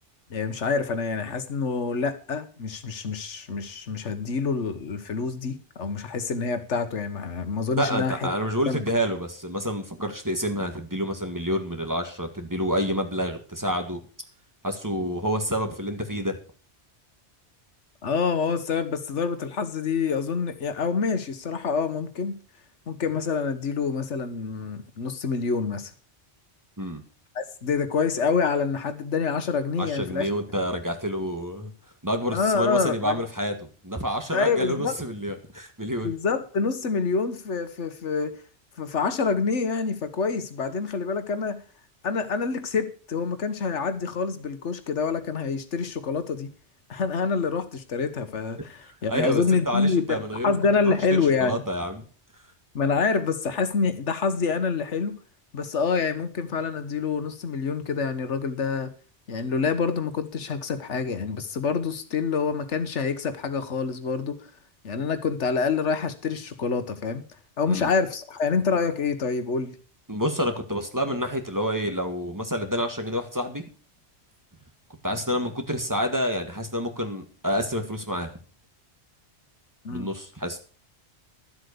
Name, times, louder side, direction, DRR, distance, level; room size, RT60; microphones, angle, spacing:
voice 1, 0.3-8.3 8.7-8.8 18.0-22.4 22.9-25.9 27.3-30.3 32.3-33.2 34.3-34.9 36.0-38.4 38.8-41.6 42.0-46.5 46.9-51.6 52.7-55.2 55.5-58.9 59.3-64.5 64.8-67.2 67.6-69.7 79.8-80.1, left 5 dB, 85° left, 1.5 m, -27 dB
voice 2, 7.8-14.0 14.6-16.4 26.8-27.0 29.8-31.7 32.0-36.1 49.1-50.6 50.8-52.0 67.7-67.9 70.1-73.6 75.0-78.3 79.9-80.6, equal, 15° right, 1.8 m, -28 dB
12.5 x 7.9 x 6.7 m
omnidirectional pair, 1.2 m